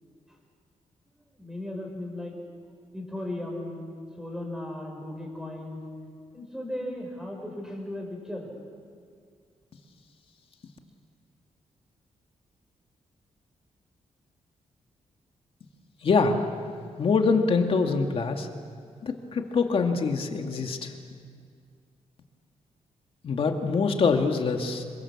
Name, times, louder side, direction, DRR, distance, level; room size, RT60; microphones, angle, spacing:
voice 1, 1.1-2.4 2.9-3.9 4.2-5.8 6.3-8.5, left 1 dB, 5° right, 1 dB, 5.7 m, -36 dB
voice 2, 16.0-16.4 17.0-18.5 19.0-20.9 23.2-24.8, left 4 dB, 50° left, 4 dB, 2.2 m, -24 dB
27.0 x 23.5 x 7.3 m, 2.2 s
wide cardioid pair, 140°, 12 cm